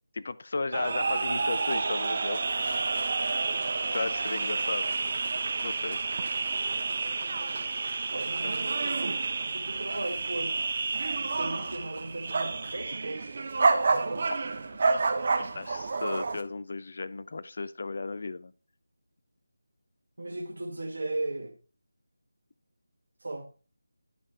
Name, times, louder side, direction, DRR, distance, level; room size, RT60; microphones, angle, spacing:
voice 1, 0.1-2.8 3.9-4.8 5.6-6.0 8.4-8.5 15.4-18.5, left 3 dB, 55° left, 0.5 m, -35 dB
sound 1, 0.7-16.4, right 4 dB, 40° right, 1.0 m, -29 dB
voice 2, 8.1-9.1 9.4-10.6 11.3-13.2 14.0-14.3 20.2-21.6 23.2-23.5, right 2 dB, 70° right, 1.9 m, -36 dB
11.0 x 5.2 x 3.3 m
figure-of-eight pair, 165°, 0 cm